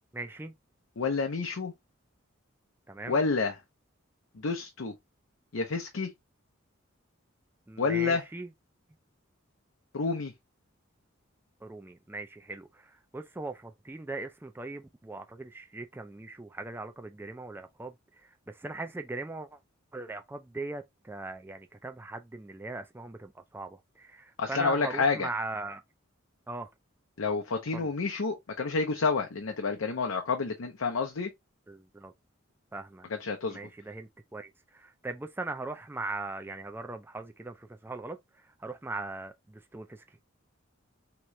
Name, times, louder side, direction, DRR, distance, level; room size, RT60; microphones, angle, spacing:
voice 1, 0.1-0.5 2.9-3.2 7.7-8.5 11.6-19.6 19.9-25.8 26.5-26.7 27.7-27.9 31.7-32.1 32.7-33.1 33.5-40.0, right 2 dB, 10° right, 0.4 m, -40 dB
voice 2, 1.0-1.7 3.1-3.6 4.3-4.9 5.5-6.1 7.8-8.2 9.9-10.3 24.4-25.3 27.2-31.3 33.1-33.6, left 4 dB, 75° left, 0.6 m, -29 dB
3.6 x 3.0 x 3.1 m
head